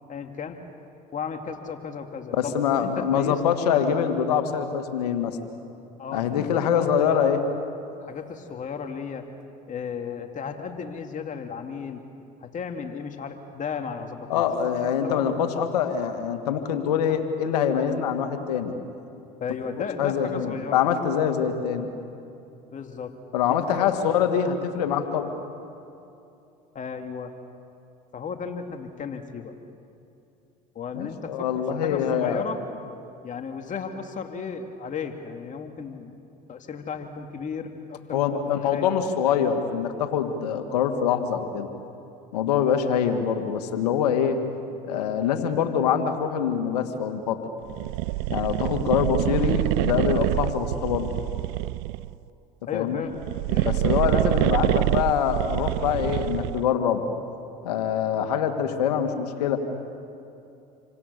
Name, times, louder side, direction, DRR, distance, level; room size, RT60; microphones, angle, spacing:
voice 1, 0.1-0.6 1.1-3.9 6.0-7.5 8.0-9.3 9.7-12.0 12.4-14.4 15.0-15.3 19.4-20.8 22.7-23.1 23.4-24.0 24.8-24.9 26.7-27.3 28.1-29.5 30.7-32.6 33.2-36.1 36.5-38.4 38.7-38.8 52.7-53.2 53.5-54.8, left 6 dB, 40° left, 5 dB, 2.4 m, -34 dB
voice 2, 2.3-5.4 6.1-7.4 14.3-18.8 20.0-21.9 23.3-25.3 30.9-32.4 38.1-41.7 42.3-44.4 44.8-47.4 48.3-51.1 52.7-53.1 53.7-57.0 57.6-59.6, left 8 dB, 85° left, 6 dB, 2.2 m, -24 dB
sound 1, 47.7-52.2 53.1-56.7, right 20 dB, 70° right, 0.5 m, -26 dB
28.5 x 25.0 x 6.9 m, 2.7 s
hypercardioid pair, 75°, 20 cm